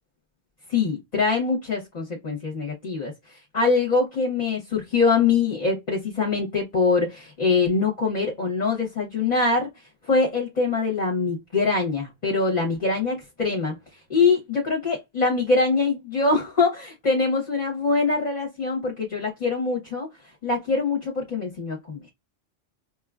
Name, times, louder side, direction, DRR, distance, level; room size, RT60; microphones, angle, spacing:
voice 1, 0.7-20.1 20.4-22.1, left 4 dB, 40° left, 0.8 m, -24 dB
4.9 x 2.2 x 2.4 m
omnidirectional pair, 1.2 m